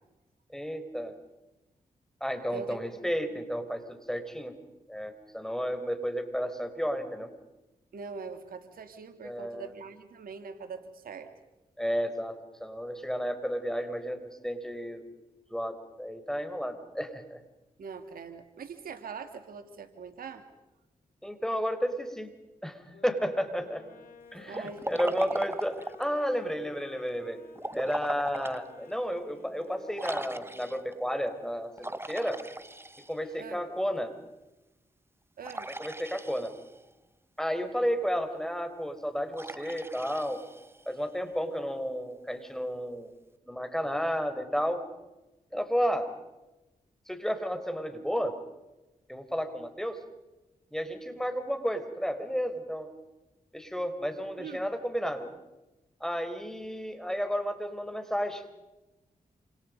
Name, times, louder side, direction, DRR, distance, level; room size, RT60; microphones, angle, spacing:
voice 1, 0.5-1.1 2.2-4.5 4.9-7.3 9.2-9.7 11.8-15.0 15.5-17.4 21.2-22.3 22.6-23.8 24.3-27.4 27.7-32.4 33.1-34.1 35.8-36.5 37.4-40.4 40.8-43.1 43.5-44.8 45.5-46.1 47.1-48.4 49.1-50.0 50.7-52.9 53.5-55.3 56.0-58.4, equal, 5° left, 7 dB, 5.0 m, -32 dB
voice 2, 7.9-11.3 17.8-20.4 24.4-25.5 33.4-33.6 35.4-35.7 54.4-54.6, right 5 dB, 80° right, 8 dB, 2.2 m, -42 dB
sound 1, 22.9-31.1, left 5 dB, 75° left, 3.9 m, -53 dB
Liquid, 24.5-26.1 27.6-28.6 29.1-29.2 30.0-30.9 31.8-33.4 35.4-36.8 39.3-41.0, right 1 dB, 15° right, 1.6 m, -38 dB
28.0 x 27.5 x 5.4 m, 1.0 s
supercardioid pair, 40°, 15 cm